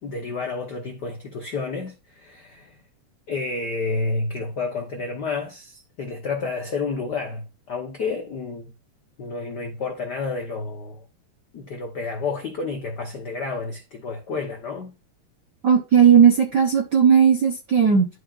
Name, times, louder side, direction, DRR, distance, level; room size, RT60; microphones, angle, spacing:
voice 1, 0.0-2.8 3.3-8.7 9.2-11.1 11.5-14.9, left 4 dB, 70° left, 0.9 m, -30 dB
voice 2, 15.6-18.1, right 7 dB, 65° right, 1.0 m, -16 dB
11.5 x 4.9 x 2.5 m
omnidirectional pair, 3.3 m